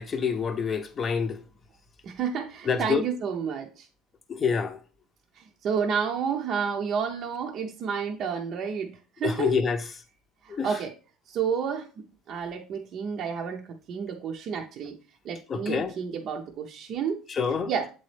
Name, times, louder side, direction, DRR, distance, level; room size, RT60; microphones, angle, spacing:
voice 1, 0.0-1.4 2.7-3.0 4.3-4.8 9.2-9.8 10.5-10.7 15.5-15.9 17.3-17.7, left 6 dB, 30° left, 0.7 m, -26 dB
voice 2, 2.0-3.9 5.3-9.5 10.4-10.9 11.3-11.9 12.3-14.9 15.2-17.2 17.7-17.9, right 6 dB, 45° right, 0.7 m, -30 dB
7.5 x 4.1 x 3.3 m
cardioid pair, 135°, 0 cm